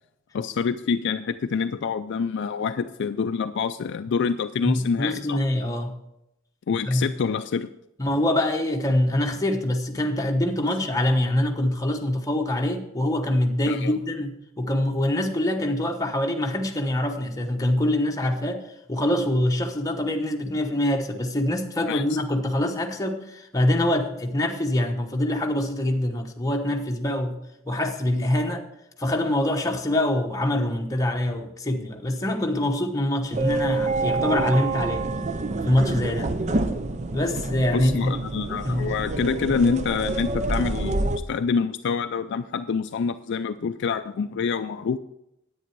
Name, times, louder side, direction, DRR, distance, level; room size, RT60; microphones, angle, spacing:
voice 1, 0.3-5.4 6.7-7.7 13.7-14.0 21.9-22.0 37.7-45.0, left 5 dB, 60° left, 10 dB, 0.4 m, -26 dB
voice 2, 4.6-6.0 6.8-7.0 8.0-27.4 27.6-28.6 29.0-35.1 35.6-36.3 37.1-38.1 38.6-38.9, left 1 dB, 15° left, 2 dB, 1.1 m, -24 dB
sound 1, 33.3-41.2, right 3 dB, 35° right, 0.6 m, -27 dB
10.0 x 8.8 x 4.6 m, 0.82 s
head